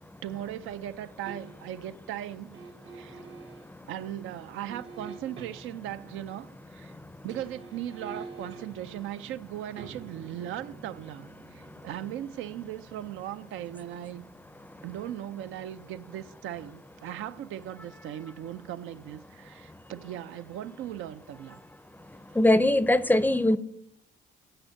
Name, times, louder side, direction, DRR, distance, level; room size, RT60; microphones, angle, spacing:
voice 1, 0.2-2.6 2.9-3.2 3.9-6.9 7.2-14.3 14.8-21.6, right 12 dB, 90° right, 0.5 m, -38 dB
sound 1, 1.2-1.8 2.5-3.7 4.7-5.9 7.1-18.1 18.4-18.5, right 4 dB, 70° right, 1.6 m, -49 dB
voice 2, 22.4-23.6, left 1 dB, 10° left, 0.5 m, -21 dB
8.9 x 5.3 x 7.7 m
cardioid pair, 90°, 20 cm